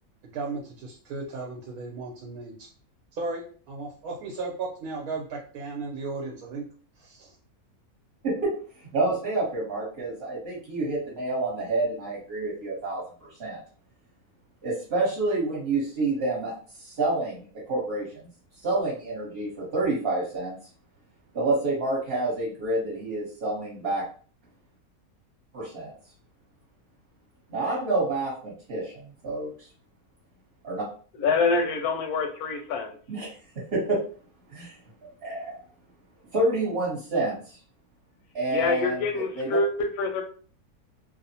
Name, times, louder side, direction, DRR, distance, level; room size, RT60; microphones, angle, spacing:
voice 1, 0.2-2.7 3.1-6.6 7.0-7.3, right 3 dB, 85° right, -2 dB, 1.1 m, -35 dB
voice 2, 8.9-13.0 13.4-13.6 14.6-16.5 16.8-18.3 18.6-20.6 21.3-24.0 25.5-25.9 27.5-28.9 29.2-29.5 30.6-30.8 33.1-33.3 33.7-34.0 34.5-34.8 35.2-35.5 36.3-37.4 38.3-39.5, right 2 dB, 45° right, -6 dB, 1.1 m, -28 dB
voice 3, 31.2-32.9 38.5-40.2, left 4 dB, 85° left, 5 dB, 1.1 m, -26 dB
2.8 x 2.0 x 2.7 m, 0.42 s
omnidirectional pair, 1.6 m